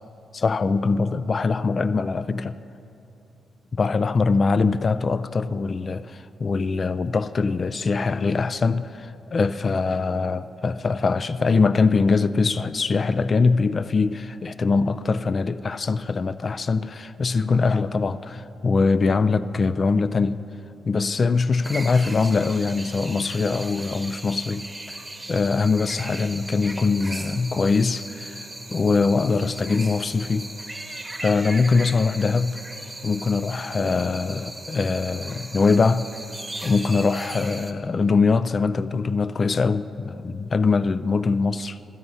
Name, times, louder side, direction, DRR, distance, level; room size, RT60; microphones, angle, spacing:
voice 1, 0.3-2.6 3.7-20.4 20.8-25.0 25.3-30.5 31.2-32.6 33.0-36.1 36.6-41.8, left 4 dB, 50° left, 0.3 m, -22 dB
sound 1, 21.6-37.7, right 2 dB, 15° right, 1.0 m, -38 dB
13.0 x 5.6 x 9.1 m
cardioid pair, 60°, 0 cm